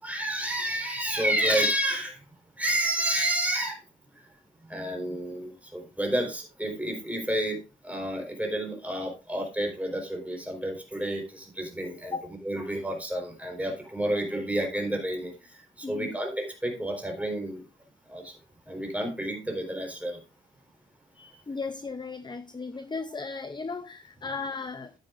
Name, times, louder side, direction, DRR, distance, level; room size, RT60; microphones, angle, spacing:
voice 1, 0.0-2.2 2.6-3.8 4.7-7.6 7.8-12.1 12.4-17.6 18.1-18.3 18.7-20.2 21.2-21.3, right 1 dB, 5° right, 4.2 m, -30 dB
voice 2, 15.8-16.2 21.5-24.9, left 4 dB, 20° left, 0.6 m, -36 dB
12.5 x 9.1 x 2.5 m
wide cardioid pair, 110°, 21 cm